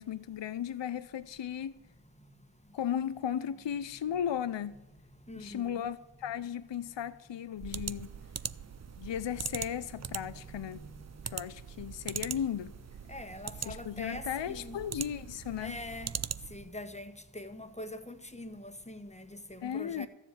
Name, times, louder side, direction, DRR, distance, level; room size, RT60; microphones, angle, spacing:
voice 1, 0.0-1.7 2.7-4.8 5.4-8.1 9.0-10.8 11.2-12.7 13.7-15.8 19.6-20.1, left 9 dB, 65° left, 0.6 m, -35 dB
voice 2, 5.3-5.9 10.8-10.9 13.1-14.8 15.6-16.1 16.5-20.1, left 1 dB, 15° left, 1.2 m, -43 dB
sound 1, 7.6-16.7, right 7 dB, 35° right, 0.4 m, -41 dB
13.5 x 7.4 x 8.5 m
wide cardioid pair, 45°, 48 cm